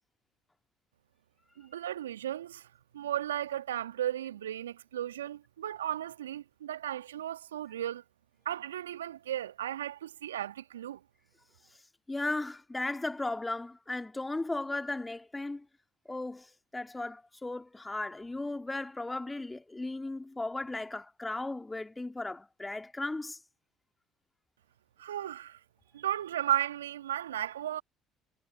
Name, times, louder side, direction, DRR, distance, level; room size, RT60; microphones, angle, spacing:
voice 1, 1.6-2.7 2.9-8.0 8.5-11.0 25.0-25.6 25.9-27.8, right 11 dB, 80° right, 1.9 m, -35 dB
voice 2, 12.1-15.7 16.1-23.4, left 2 dB, 15° left, 2.6 m, -36 dB
figure-of-eight pair, 55°, 0 cm